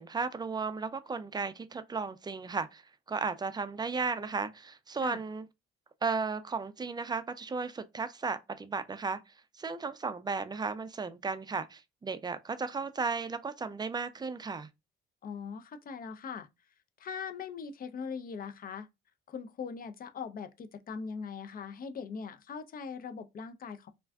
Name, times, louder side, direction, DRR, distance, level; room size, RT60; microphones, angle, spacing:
voice 1, 0.0-2.8 3.1-5.5 6.0-14.7, right 4 dB, 20° right, 0.4 m, -35 dB
voice 2, 15.2-16.5 17.0-18.9 19.3-23.9, left 6 dB, 45° left, 0.5 m, -41 dB
2.4 x 2.3 x 3.3 m
cardioid pair, 90°, 21 cm